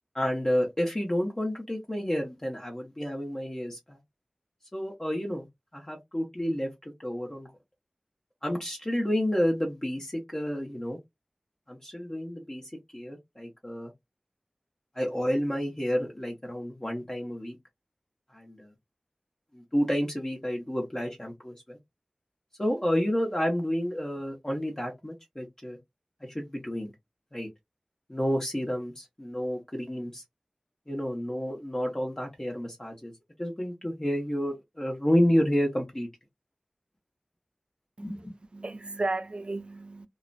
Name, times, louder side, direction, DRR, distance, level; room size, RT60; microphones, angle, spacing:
voice 1, 0.1-4.0 4.7-5.5 5.7-6.7 7.0-7.5 8.4-11.0 11.7-12.6 12.9-13.9 15.0-17.6 18.3-18.7 19.5-21.8 22.6-25.8 26.3-26.9 27.3-27.5 28.1-30.2 30.9-33.1 33.4-36.1 38.0-38.2, equal, 25° left, 0.8 m, -30 dB
voice 2, 38.5-40.1, right 2 dB, 55° right, 0.4 m, -34 dB
2.4 x 2.1 x 2.4 m
wide cardioid pair, 50°, 2 cm